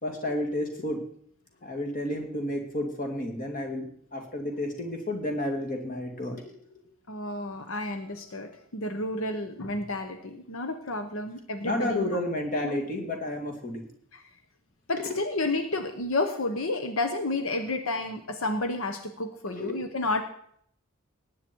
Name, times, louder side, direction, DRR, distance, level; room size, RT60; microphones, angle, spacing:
voice 1, 0.0-1.0 1.6-6.8 11.6-13.9 15.0-15.2 19.5-19.8, left 1 dB, 40° left, 3 dB, 2.6 m, -31 dB
voice 2, 7.1-12.2 14.1-14.2 14.9-20.2, left 2 dB, 80° left, 7 dB, 1.1 m, -31 dB
18.5 x 9.1 x 4.6 m, 0.66 s
head